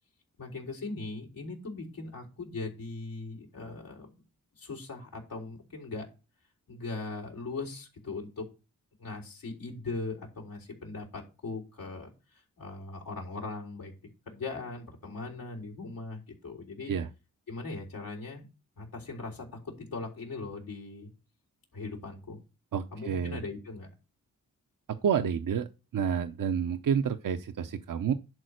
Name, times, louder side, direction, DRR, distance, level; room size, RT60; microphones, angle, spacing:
voice 1, 0.4-4.1 4.5-6.1 6.7-8.5 9.0-13.9 14.3-16.9 17.5-18.5 18.8-21.1 21.7-22.4 22.9-23.9, left 3 dB, 90° left, -1 dB, 3.7 m, -39 dB
voice 2, 22.7-23.4 24.9-28.1, right 7 dB, 70° right, 8 dB, 0.8 m, -29 dB
11.0 x 4.2 x 6.4 m, 0.28 s
cardioid pair, 55°, 34 cm